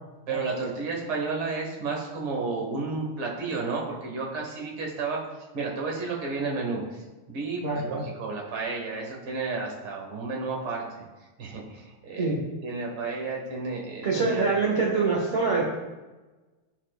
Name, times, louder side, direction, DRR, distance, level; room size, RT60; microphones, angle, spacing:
voice 1, 0.3-5.2 5.5-11.0 11.4-12.3 12.6-14.4 14.7-14.8, right 4 dB, 80° right, -1 dB, 2.2 m, -32 dB
voice 2, 7.6-8.0 12.2-12.4 14.0-15.8, right 4 dB, 35° right, -5 dB, 1.1 m, -25 dB
12.0 x 4.5 x 2.4 m, 1.2 s
omnidirectional pair, 2.3 m